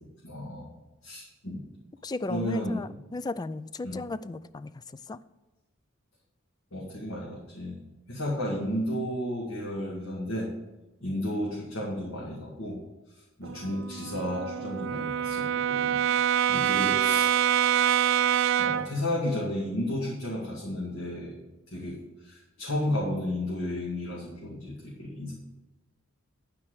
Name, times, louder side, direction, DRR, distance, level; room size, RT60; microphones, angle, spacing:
voice 1, 0.2-0.7 1.0-1.6 2.3-2.8 3.8-4.0 6.7-7.8 8.1-10.5 11.0-12.8 13.1-17.3 18.6-21.3 21.7-25.3, left 1 dB, 75° left, -4 dB, 2.2 m, -33 dB
voice 2, 2.0-5.2, left 2 dB, 20° left, 15 dB, 0.3 m, -36 dB
Brass instrument, 13.4-19.0, right 9 dB, 65° right, 0.4 m, -25 dB
12.0 x 4.6 x 7.9 m, 1.0 s
head